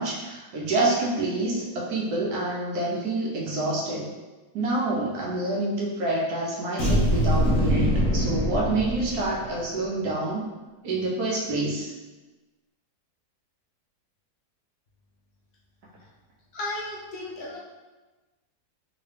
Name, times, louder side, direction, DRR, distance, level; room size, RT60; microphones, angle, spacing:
voice 1, 0.0-4.1 4.5-10.5 10.8-11.9, right 2 dB, 70° right, -3 dB, 1.1 m, -27 dB
sound 1, 6.8-9.6, equal, 50° left, 1.0 m, -23 dB
voice 2, 16.5-17.6, left 2 dB, 70° left, -4 dB, 1.2 m, -34 dB
2.9 x 2.9 x 3.2 m, 1.2 s
omnidirectional pair, 1.8 m